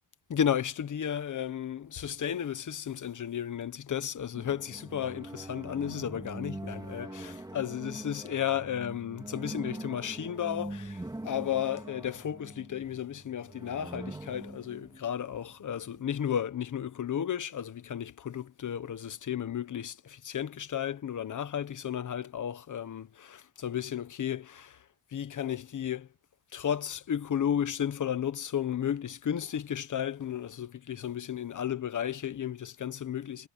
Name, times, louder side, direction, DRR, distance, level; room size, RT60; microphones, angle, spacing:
voice 1, 0.3-24.8 25.1-26.1 26.5-33.5, left 9 dB, 40° left, 1.4 m, -33 dB
sound 1, 4.3-16.0, right 2 dB, 10° right, 3.1 m, -43 dB
cardioid pair, 150°, 48 cm